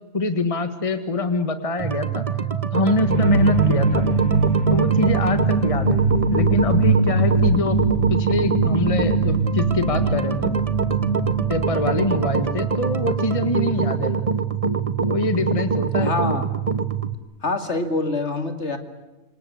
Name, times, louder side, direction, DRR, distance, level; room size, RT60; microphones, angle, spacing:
voice 1, 0.1-2.3 2.7-4.1 4.7-6.0 6.3-7.8 8.1-10.6 11.5-14.1 15.1-16.1, left 2 dB, 25° left, 9 dB, 1.7 m, -24 dB
sound 1, 1.8-17.1, right 6 dB, 25° right, 1.2 m, -24 dB
sound 2, 3.1-13.3, right 3 dB, 55° right, 2.7 m, -22 dB
voice 2, 16.0-16.5 17.4-18.8, left 3 dB, 50° left, 8 dB, 2.8 m, -25 dB
28.0 x 26.0 x 8.1 m, 1.1 s
omnidirectional pair, 1.5 m